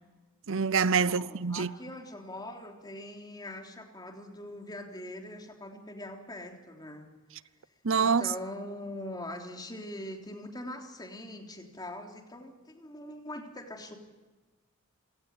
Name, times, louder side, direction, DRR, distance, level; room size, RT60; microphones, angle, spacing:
voice 1, 0.5-1.7 7.8-8.3, right 5 dB, 65° right, 0.7 m, -26 dB
voice 2, 1.0-7.1 8.0-14.0, left 1 dB, 20° left, 3.4 m, -42 dB
27.0 x 18.5 x 9.9 m
head